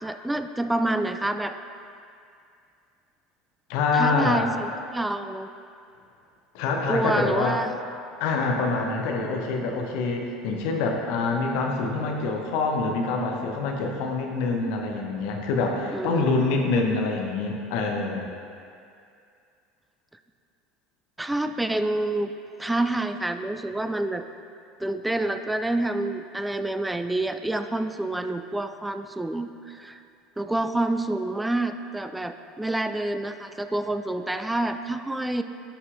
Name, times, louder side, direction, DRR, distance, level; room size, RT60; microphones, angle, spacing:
voice 1, 0.0-1.6 3.9-5.5 6.9-7.7 15.9-16.3 21.2-22.3 22.6-24.2 24.8-30.0 30.4-35.4, right 2 dB, 5° right, 9 dB, 0.3 m, -28 dB
voice 2, 3.7-4.5 6.5-7.6 8.2-18.3, left 3 dB, 55° left, 1 dB, 0.8 m, -25 dB
9.9 x 5.4 x 2.5 m, 2.4 s
figure-of-eight pair, 70°, 0 cm